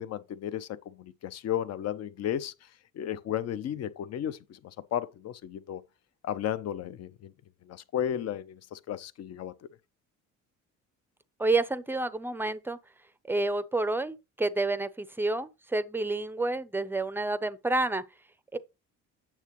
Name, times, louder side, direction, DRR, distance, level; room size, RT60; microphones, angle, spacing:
voice 1, 0.0-2.5 2.9-5.8 6.2-7.3 7.6-9.5, left 10 dB, 55° left, 0.8 m, -34 dB
voice 2, 11.4-12.8 13.3-18.0 18.5-18.6, right 2 dB, 5° right, 0.5 m, -29 dB
9.0 x 7.2 x 3.0 m
cardioid pair, 150°, 30 cm